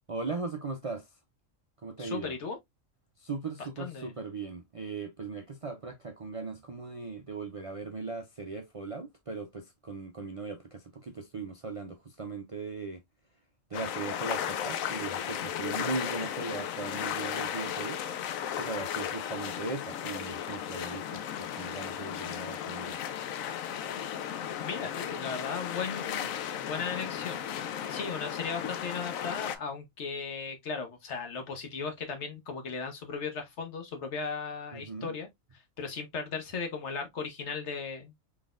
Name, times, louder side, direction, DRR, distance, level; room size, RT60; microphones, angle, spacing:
voice 1, 0.1-1.1 1.8-2.3 3.2-13.0 13.7-18.0 18.6-23.0 34.7-35.1, right 4 dB, 55° right, 0.3 m, -38 dB
voice 2, 2.0-2.6 3.8-4.1 24.6-27.4 27.9-35.3 35.5-38.1, left 5 dB, 60° left, 1.3 m, -37 dB
sound 1, 13.7-29.6, left 9 dB, 80° left, 1.0 m, -35 dB
3.9 x 3.4 x 2.4 m
omnidirectional pair, 1.4 m